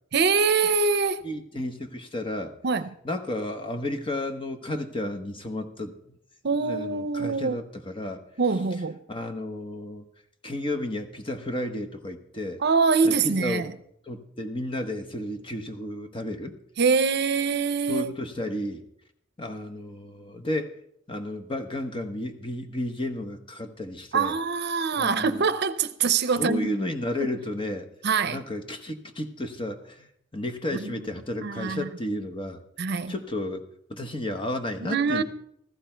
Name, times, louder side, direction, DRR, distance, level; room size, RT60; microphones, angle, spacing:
voice 1, 0.1-1.2 2.6-2.9 6.4-7.6 8.4-9.0 12.6-13.7 16.8-18.1 24.1-26.7 28.0-28.4 30.8-30.9 31.4-31.9 32.8-33.1 34.8-35.2, right 5 dB, 60° right, 0.7 m, -24 dB
voice 2, 1.2-2.6 3.0-6.2 6.5-8.2 9.1-10.0 10.4-12.6 13.0-13.6 14.1-16.5 17.9-18.8 19.4-20.7 21.1-24.4 25.0-25.5 26.3-27.9 28.2-32.6 33.1-35.2, left 1 dB, 25° left, 1.2 m, -32 dB
15.0 x 14.0 x 4.5 m
head